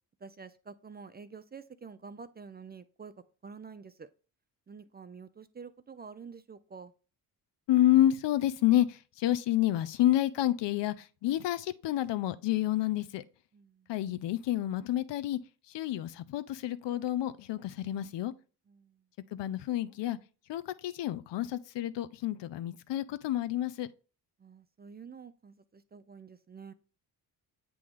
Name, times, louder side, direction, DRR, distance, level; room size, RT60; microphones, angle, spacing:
voice 1, 0.2-3.1 3.4-4.1 4.7-6.9 13.5-13.9 18.7-19.1 24.4-26.7, right 5 dB, 20° right, 0.4 m, -48 dB
voice 2, 7.7-13.2 13.9-15.4 15.7-18.3 19.3-20.2 20.5-23.9, left 13 dB, 60° left, 0.7 m, -29 dB
8.5 x 3.0 x 3.7 m
hypercardioid pair, 45°, 49 cm